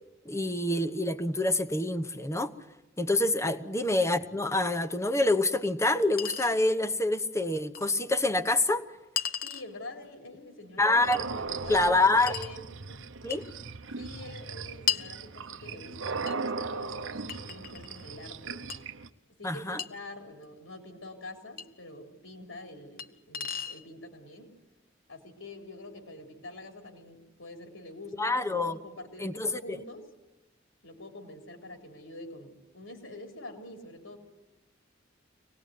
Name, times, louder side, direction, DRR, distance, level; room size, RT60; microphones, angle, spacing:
voice 1, 0.3-2.5 3.0-8.8 10.8-11.2 11.7-12.3 13.2-13.5 19.4-19.8 28.2-28.8 29.2-29.8, left 2 dB, 15° left, 1.0 m, -26 dB
Chink clink, 6.2-6.5 7.8-7.9 9.2-9.7 11.1-11.3 12.3-12.6 13.3-13.5 14.9-15.1 16.3-16.4 17.3-18.0 18.7-18.8 19.8-19.9 21.6-21.7 23.0-23.1 23.3-23.8, left 9 dB, 50° left, 1.0 m, -34 dB
voice 2, 9.4-13.0 14.0-18.6 19.4-24.5 25.1-30.1 30.8-34.2, left 1 dB, 85° left, 3.7 m, -46 dB
sound 1, 11.0-19.1, right 4 dB, 70° right, 0.9 m, -38 dB
25.0 x 19.0 x 9.4 m
head